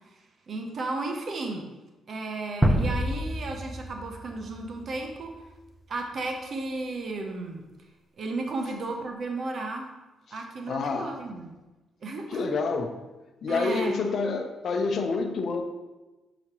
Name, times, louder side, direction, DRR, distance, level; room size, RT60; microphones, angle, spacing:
voice 1, 0.2-1.6 2.1-5.3 5.9-7.6 8.2-9.9 10.3-11.5 12.0-12.4 13.5-14.0, right 3 dB, 50° right, 3 dB, 0.8 m, -34 dB
sound 1, 2.6-5.5, equal, 10° right, 0.6 m, -28 dB
voice 2, 10.7-11.2 12.3-13.0 13.4-15.6, left 4 dB, 55° left, 6 dB, 0.7 m, -28 dB
7.0 x 5.0 x 3.0 m, 1.1 s
cardioid pair, 90°, 0 cm